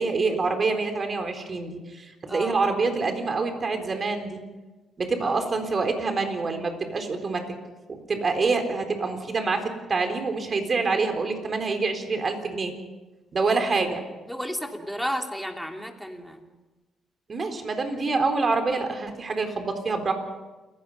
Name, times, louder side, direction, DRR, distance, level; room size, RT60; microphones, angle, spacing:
voice 1, 0.0-4.4 5.0-7.4 7.9-12.7 13.3-14.0 17.3-20.1, right 4 dB, 40° right, 6 dB, 3.9 m, -26 dB
voice 2, 2.3-2.7 5.2-5.4 14.3-16.5, equal, ahead, 3 dB, 2.9 m, -33 dB
28.5 x 16.5 x 5.7 m, 1.2 s
cardioid pair, 90°, 0 cm